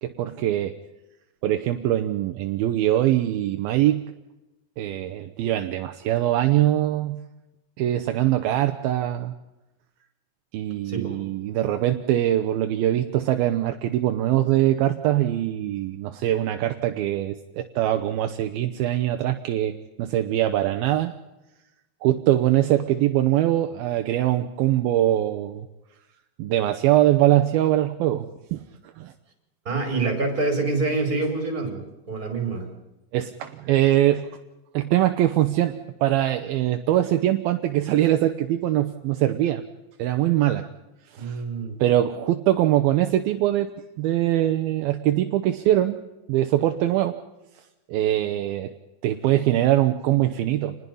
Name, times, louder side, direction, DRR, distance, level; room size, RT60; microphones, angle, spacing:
voice 1, 0.0-0.7 1.4-4.0 4.8-7.2 7.8-9.3 10.5-21.1 22.0-25.7 26.4-28.3 28.5-28.6 29.0-29.1 33.1-34.3 34.7-39.6 40.0-40.7 41.1-41.4 41.8-43.7 44.0-46.0 46.3-47.2 47.9-48.7 49.0-50.8, right 13 dB, 75° right, 7 dB, 2.3 m, -22 dB
voice 2, 10.8-11.2 29.6-32.7 41.2-41.8, right 3 dB, 20° right, 4 dB, 5.0 m, -26 dB
28.0 x 20.5 x 5.5 m, 0.99 s
omnidirectional pair, 5.3 m